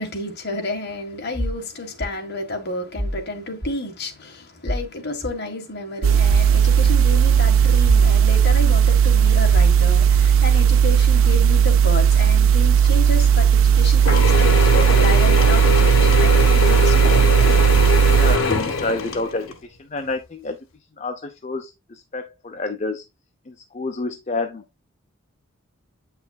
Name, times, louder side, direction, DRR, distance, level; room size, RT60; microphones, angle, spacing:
voice 1, 0.0-17.9, left 2 dB, 50° left, 1.6 m, -30 dB
sound 1, 1.3-1.6 2.0-2.1 2.9-3.2 3.6-3.7 4.6-4.9 5.2-5.3 6.3-6.5 6.9-7.0 7.9-8.1 8.5-8.6 9.5-9.7 10.1-10.3, equal, 25° right, 4.3 m, -26 dB
sound 2, 6.0-18.4, right 8 dB, 70° right, 0.3 m, -15 dB
Mechanisms / Drill, 14.1-19.6, left 4 dB, 65° left, 1.2 m, -22 dB
voice 2, 18.1-20.6 21.0-23.0 23.5-24.6, left 3 dB, 35° left, 0.6 m, -29 dB
8.2 x 5.7 x 2.3 m
head